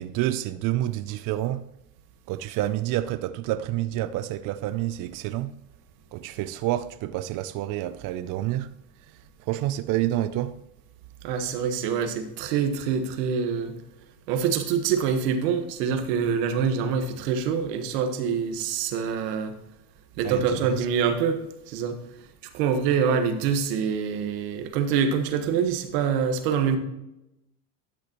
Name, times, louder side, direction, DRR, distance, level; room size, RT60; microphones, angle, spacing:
voice 1, 0.0-1.6 2.3-5.5 6.1-8.7 9.1-10.6 20.2-20.9, right 14 dB, 45° right, 0.4 m, -28 dB
voice 2, 11.2-13.7 14.3-19.6 20.2-22.0 22.5-26.8, right 6 dB, 75° right, 1.4 m, -25 dB
12.5 x 6.4 x 3.0 m
supercardioid pair, 100°, 49 cm